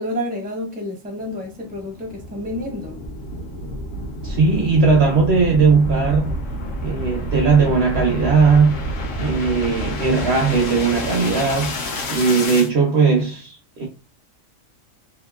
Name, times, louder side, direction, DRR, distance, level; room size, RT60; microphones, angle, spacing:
voice 1, 0.0-3.0, left 1 dB, 10° right, 0.5 m, -29 dB
sound 1, 1.2-12.7, equal, 70° left, 1.0 m, -29 dB
voice 2, 4.2-6.4 6.8-8.9 9.2-11.8 12.1-13.9, right 4 dB, 60° right, 0.8 m, -18 dB
2.9 x 2.5 x 2.3 m
omnidirectional pair, 1.4 m